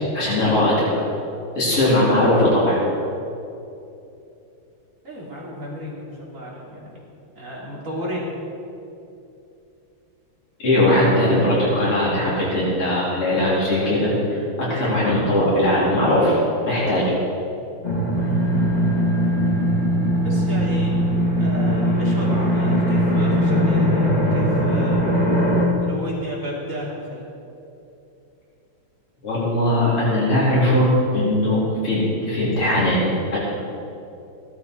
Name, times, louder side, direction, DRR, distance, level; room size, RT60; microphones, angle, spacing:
voice 1, 0.1-0.9 1.6-2.8 10.6-16.4 16.6-17.1 29.2-33.0 33.3-33.4, left 1 dB, 75° left, -8 dB, 4.9 m, -19 dB
voice 2, 5.0-7.0 7.3-8.3 20.1-21.0 21.4-25.0 25.8-27.3, equal, 35° right, -5 dB, 3.3 m, -33 dB
sound 1, 17.8-25.6, equal, 20° left, 2.3 m, -20 dB
16.5 x 12.0 x 4.7 m, 2.8 s
omnidirectional pair, 2.4 m